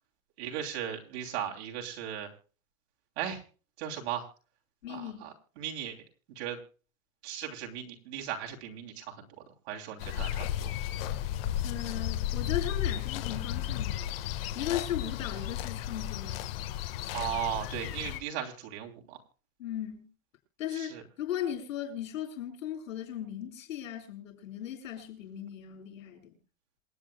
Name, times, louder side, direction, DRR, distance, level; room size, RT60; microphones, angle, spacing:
voice 1, 0.4-2.3 3.2-3.4 3.8-4.2 4.9-5.3 5.6-6.0 6.4-6.6 7.2-9.3 9.7-10.7 17.1-19.2 20.7-21.0, right 10 dB, 50° right, 3.1 m, -37 dB
voice 2, 4.8-5.3 11.6-14.2 14.5-16.4 19.6-20.1 20.6-26.3, left 10 dB, 75° left, 7.4 m, -37 dB
sound 1, 10.0-18.2, left 11 dB, 45° left, 1.5 m, -34 dB
27.5 x 9.2 x 2.3 m
supercardioid pair, 175°, 40 cm